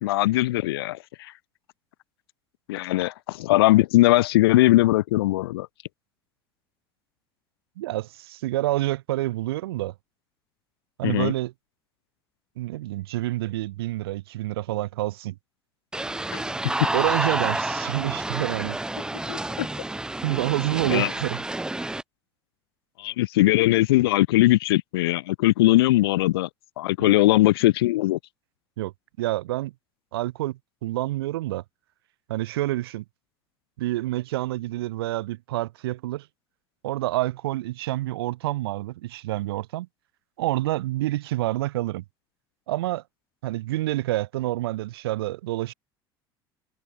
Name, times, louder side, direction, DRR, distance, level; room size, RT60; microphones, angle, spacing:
voice 1, 0.0-1.3 2.7-5.7 11.0-11.3 16.3-16.4 19.3-19.4 20.9-21.1 23.0-26.5 26.8-28.2, left 17 dB, 75° left, 0.4 m, -20 dB
voice 2, 7.8-9.9 11.0-11.5 12.6-15.3 16.9-18.8 20.2-21.4 27.0-27.2 28.8-28.9 29.2-29.7 30.1-31.6 32.3-33.0 33.8-36.3 36.8-39.9 40.4-42.0 42.7-43.0 43.4-45.7, right 16 dB, 75° right, 2.3 m, -28 dB
sound 1, 15.9-22.0, right 2 dB, 5° right, 0.4 m, -29 dB
hypercardioid pair, 65°, 13 cm